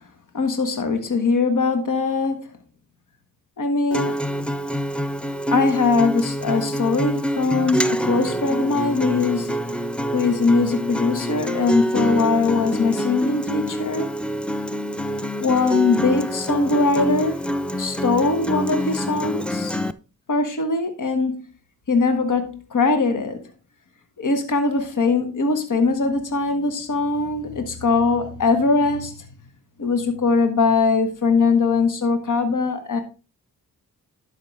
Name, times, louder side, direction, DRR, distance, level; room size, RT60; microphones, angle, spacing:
voice 1, 0.3-2.5 3.6-4.2 5.5-9.6 10.1-14.1 15.4-17.4 17.8-19.8 20.3-21.4 21.9-23.5 24.2-29.1 29.8-33.0, left 4 dB, 55° left, 1.5 m, -21 dB
Acoustic guitar, 3.9-19.9, equal, 5° left, 0.6 m, -26 dB
11.5 x 5.8 x 3.5 m
cardioid pair, 55°, 37 cm